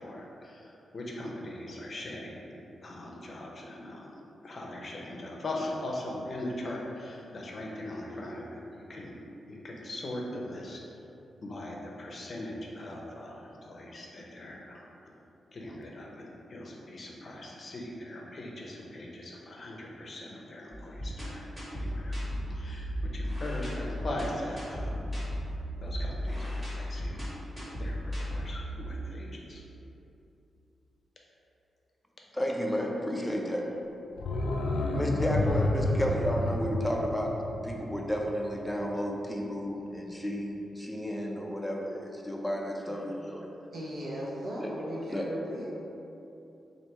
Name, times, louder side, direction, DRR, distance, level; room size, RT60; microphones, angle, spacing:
voice 1, 0.0-2.5 2.8-4.1 4.4-9.1 9.5-10.8 11.4-14.9 15.5-22.2 22.5-25.0 25.8-27.3 27.8-29.6, left 1 dB, 45° left, -2 dB, 0.6 m, -40 dB
sound 1, 20.7-28.9, equal, 20° right, 1.1 m, -35 dB
voice 2, 32.3-33.7 34.9-37.3 37.6-43.5 44.6-44.7 45.1-45.2, equal, 5° left, -1 dB, 0.5 m, -32 dB
sound 2, 34.1-38.9 39.2-39.3, left 2 dB, 90° left, 0.3 m, -30 dB
voice 3, 43.7-45.7, equal, 60° right, -5 dB, 0.9 m, -37 dB
3.3 x 2.6 x 4.3 m, 2.8 s
cardioid pair, 95°, 0 cm